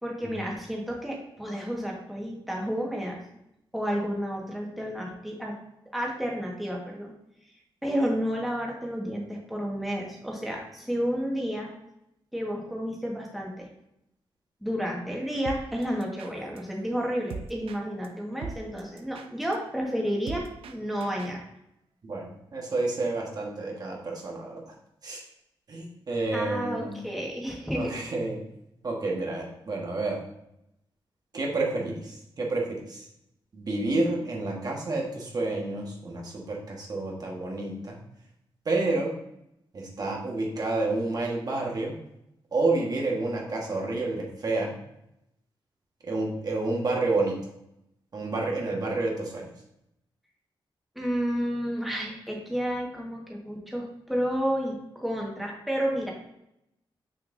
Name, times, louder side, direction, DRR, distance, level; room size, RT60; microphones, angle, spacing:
voice 1, 0.0-3.2 3.7-5.5 5.9-7.1 7.8-11.7 12.3-13.7 14.6-21.4 26.3-27.9 50.9-56.1, equal, ahead, -2 dB, 1.5 m, -31 dB
sound 1, 15.3-21.4, right 5 dB, 85° right, 0.5 m, -43 dB
voice 2, 22.0-24.7 25.0-25.2 25.7-26.9 27.7-28.4 28.8-30.2 31.3-33.0 33.5-38.0 38.6-39.1 39.7-41.9 42.5-44.7 46.0-47.4 48.1-49.5, right 2 dB, 45° right, -1 dB, 1.5 m, -29 dB
6.4 x 5.8 x 2.7 m, 0.81 s
wide cardioid pair, 110°, 9 cm